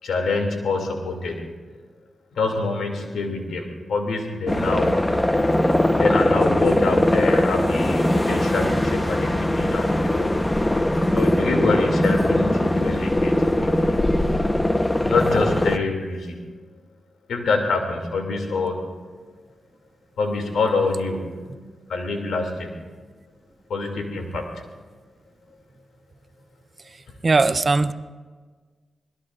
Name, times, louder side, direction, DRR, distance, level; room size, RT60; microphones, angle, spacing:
voice 1, 0.0-1.5 2.3-5.0 5.9-10.4 11.1-14.0 15.1-16.4 17.3-18.9 20.2-21.4 21.9-22.7 23.7-24.6, left 3 dB, 85° left, 2 dB, 2.7 m, -26 dB
sound 1, 4.5-15.8, left 1 dB, 20° left, 1.1 m, -21 dB
voice 2, 27.2-27.9, right 3 dB, 45° right, 12 dB, 0.7 m, -19 dB
26.5 x 19.5 x 2.6 m, 1.5 s
cardioid pair, 50°, 0 cm